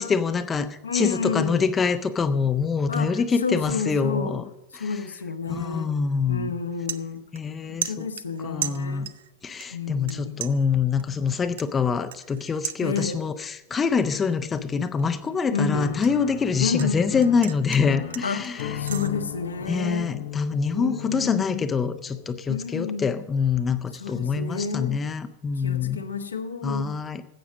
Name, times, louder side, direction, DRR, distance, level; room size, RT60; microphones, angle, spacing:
voice 1, 0.0-4.4 4.7-5.0 5.5-6.5 7.3-8.1 8.4-9.1 9.4-18.8 19.7-26.0 26.6-27.3, left 5 dB, 20° left, 9 dB, 0.7 m, -25 dB
voice 2, 0.8-1.7 2.9-4.4 4.7-5.9 6.3-7.2 7.7-9.1 9.7-10.4 12.8-13.2 15.5-15.9 16.6-17.0 18.2-20.1 20.7-21.7 22.5-23.1 24.0-25.0 25.6-26.9, left 5 dB, 75° left, 6 dB, 1.2 m, -30 dB
sound 1, 6.0-6.2 6.5-7.6 7.8-9.3 9.6-10.1 10.4-13.3 13.7-14.0 14.4-16.9 17.2-19.1, right 10 dB, 60° right, 0.6 m, -36 dB
Piano, 15.7-22.5, left 11 dB, 55° left, 0.9 m, -36 dB
14.5 x 8.4 x 5.0 m, 0.94 s
figure-of-eight pair, 90°, 0 cm